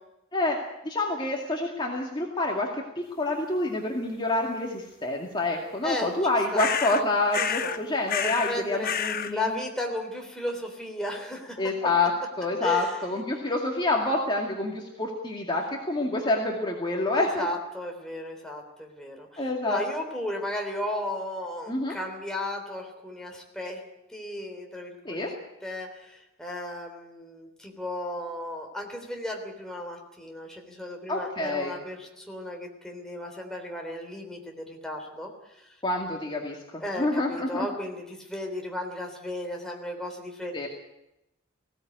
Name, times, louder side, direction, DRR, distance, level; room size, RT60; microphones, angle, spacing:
voice 1, 0.8-9.5 11.6-12.1 12.4-17.5 19.4-19.8 21.7-22.0 25.0-25.3 31.1-31.8 35.8-37.7 40.5-40.7, left 2 dB, 25° left, -1 dB, 2.2 m, -27 dB
sound 1, 6.6-7.0 7.3-7.8 8.1-8.6 8.8-9.3, left 8 dB, 45° left, 0.8 m, -29 dB
voice 2, 7.4-7.8 8.2-11.8 12.6-13.0 17.1-23.8 24.1-25.4 25.6-35.7 36.8-40.7, left 1 dB, 5° left, 1 dB, 3.5 m, -35 dB
19.5 x 16.5 x 9.3 m, 0.89 s
head